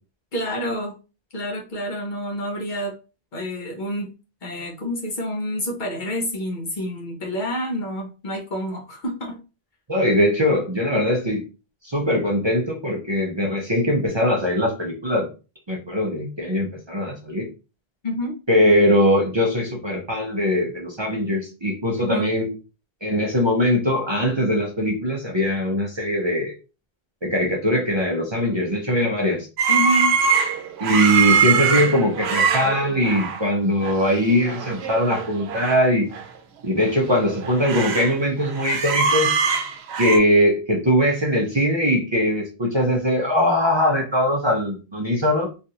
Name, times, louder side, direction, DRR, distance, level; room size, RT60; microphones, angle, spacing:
voice 1, 0.3-0.9 1.3-2.9 3.3-4.1 4.4-9.4 18.0-18.3 22.0-22.3 29.7-30.1, equal, 50° left, 0 dB, 0.9 m, -28 dB
voice 2, 9.9-11.4 11.8-15.3 15.7-17.5 18.5-22.5 23.0-26.5 27.2-29.5 30.8-36.1 36.6-39.3 40.0-45.5, equal, 30° right, -2 dB, 0.6 m, -21 dB
sound 1, 29.6-33.4 33.8-34.0 34.3-35.8 36.1-36.2 36.8-38.1 38.4-40.2, right 6 dB, 85° right, 0.8 m, -23 dB
3.2 x 2.5 x 2.8 m, 0.32 s
omnidirectional pair, 1.0 m